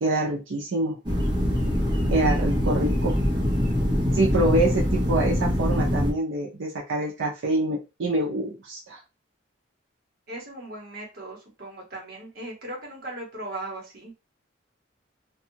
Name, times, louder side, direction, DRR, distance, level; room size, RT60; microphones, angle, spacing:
voice 1, 0.0-1.0 2.1-3.2 4.1-9.0, right 2 dB, 75° right, -3 dB, 0.6 m, -26 dB
sound 1, 1.0-6.1, equal, 20° right, 0.7 m, -23 dB
voice 2, 10.3-14.1, right 1 dB, 50° right, -2 dB, 1.0 m, -38 dB
2.6 x 2.3 x 2.7 m, 0.28 s
head